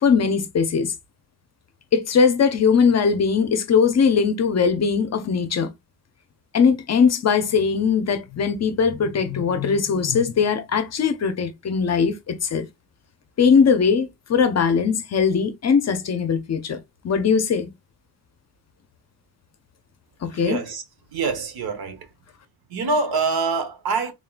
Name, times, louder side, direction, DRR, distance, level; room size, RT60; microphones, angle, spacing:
voice 1, 0.0-0.9 1.9-5.7 6.5-12.7 13.4-17.7 20.2-20.6, left 6 dB, 40° left, 0.6 m, -20 dB
voice 2, 20.3-20.8 21.1-22.1 22.7-24.1, right 4 dB, 65° right, 1.1 m, -25 dB
3.7 x 3.6 x 2.4 m
wide cardioid pair, 175°, 40 cm